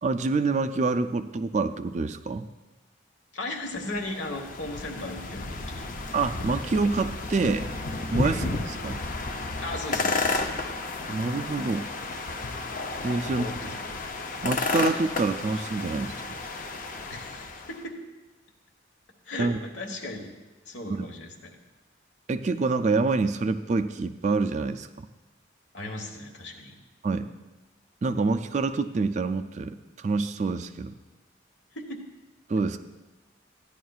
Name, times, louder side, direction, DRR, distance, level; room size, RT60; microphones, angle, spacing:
voice 1, 0.0-2.5 6.1-7.7 8.1-9.0 11.1-11.9 13.0-13.5 14.4-16.4 19.4-19.6 20.9-21.1 22.3-25.1 27.0-27.3 28.0-30.9 32.5-32.8, right 3 dB, 35° right, 9 dB, 0.3 m, -27 dB
voice 2, 3.3-5.9 8.2-8.4 9.6-10.4 13.2-14.0 17.1-18.0 19.2-20.3 20.6-21.6 25.7-26.8 31.7-32.0, left 2 dB, 70° left, 3 dB, 1.3 m, -36 dB
sound 1, 3.8-17.8, left 3 dB, 40° left, 0.6 m, -32 dB
14.5 x 10.0 x 2.4 m, 1.1 s
head